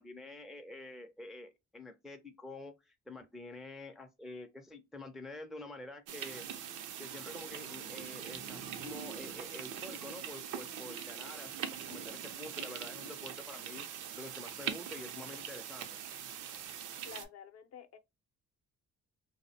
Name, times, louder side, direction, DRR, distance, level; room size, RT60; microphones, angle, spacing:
voice 1, 0.0-6.5 7.0-11.5 11.9-13.9 14.2-16.0, left 2 dB, ahead, 0.3 m, -48 dB
sound 1, 6.1-17.3, right 8 dB, 90° right, 0.5 m, -42 dB
voice 2, 17.0-18.0, left 7 dB, 55° left, 0.5 m, -50 dB
2.5 x 2.0 x 2.6 m
cardioid pair, 90°, 30 cm